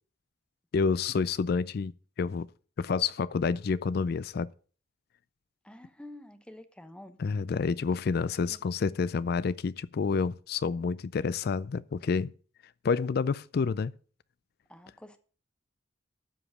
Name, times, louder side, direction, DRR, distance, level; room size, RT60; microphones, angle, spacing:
voice 1, 0.7-1.9 2.2-2.5 2.8-4.5 7.2-12.3 12.8-13.9, left 5 dB, 55° left, 0.4 m, -28 dB
voice 2, 5.6-7.2 8.5-8.6 14.7-15.2, left 1 dB, 5° left, 1.0 m, -48 dB
13.0 x 5.0 x 6.4 m
head